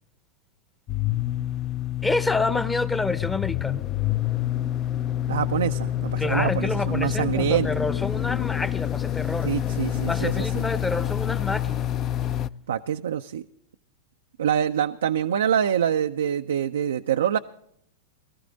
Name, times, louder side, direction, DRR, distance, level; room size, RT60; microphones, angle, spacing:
sound 1, 0.9-12.5, left 12 dB, 35° left, 0.5 m, -27 dB
voice 1, 2.0-3.9 6.2-9.5 10.1-11.9, left 3 dB, 10° left, 0.8 m, -28 dB
voice 2, 5.3-7.7 9.4-10.6 12.7-13.4 14.4-17.4, right 9 dB, 80° right, 0.4 m, -25 dB
20.0 x 13.5 x 3.9 m
hypercardioid pair, 105°, 0 cm